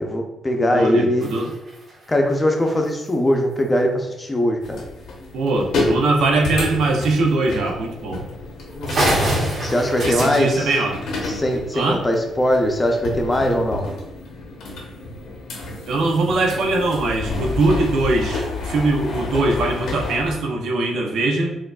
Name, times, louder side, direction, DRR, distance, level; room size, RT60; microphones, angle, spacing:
voice 1, 0.0-1.3 2.1-4.8 9.6-10.7 11.3-13.9, left 1 dB, 20° left, 3 dB, 0.6 m, -20 dB
voice 2, 0.7-1.5 5.3-8.2 10.0-11.0 11.7-12.0 15.9-21.5, right 2 dB, 80° right, 1 dB, 0.6 m, -21 dB
sound 1, 1.2-3.1 4.6-4.7 5.1-5.2 5.6-5.8 6.7-6.8 7.6-7.7 8.1-8.2 8.6-8.7 8.9-11.6, right 1 dB, 50° right, 1.3 m, -27 dB
sound 2, 4.6-20.4, left 2 dB, 75° left, 0.9 m, -30 dB
4.5 x 2.5 x 2.3 m, 0.92 s
cardioid pair, 90°, 0 cm